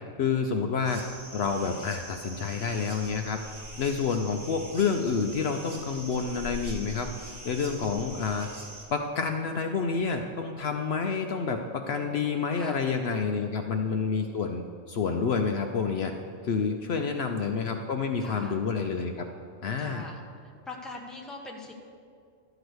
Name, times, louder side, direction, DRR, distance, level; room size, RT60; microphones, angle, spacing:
voice 1, 0.2-1.0 1.3-3.4 3.8-7.1 7.4-8.5 8.9-16.1 16.4-19.3 19.6-20.1, left 5 dB, 65° left, 5 dB, 0.8 m, -28 dB
sound 1, 0.8-8.8, right 1 dB, 65° right, 1.9 m, -43 dB
voice 2, 11.9-12.8 13.2-13.5 16.8-17.3 18.2-18.6 19.8-20.2 20.7-21.7, left 2 dB, ahead, 0 dB, 1.0 m, -43 dB
12.0 x 4.9 x 7.8 m, 2.3 s
omnidirectional pair, 1.3 m